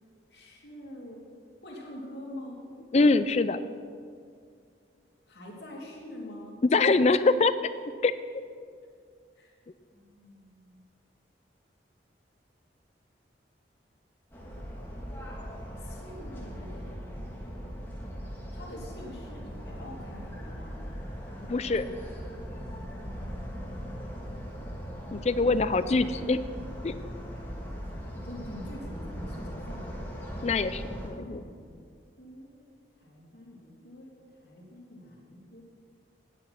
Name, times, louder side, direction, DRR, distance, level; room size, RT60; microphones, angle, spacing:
voice 1, 0.3-1.2 1.6-2.6 5.3-6.5 9.4-9.5 9.9-10.8 15.8-16.9 18.5-20.8 27.2-27.8 28.1-30.1 30.7-31.8 32.2-32.5 33.0-34.1 34.4-35.6, left 1 dB, 65° left, -3 dB, 2.6 m, -46 dB
voice 2, 2.9-3.6 6.7-7.5 8.0-8.2 21.4-21.9 25.1-26.4 26.8-26.9 30.4-31.4, left 3 dB, 35° left, 13 dB, 0.4 m, -24 dB
sound 1, 14.3-31.1, equal, 10° left, 1.6 m, -39 dB
9.9 x 9.4 x 5.9 m, 2.2 s
head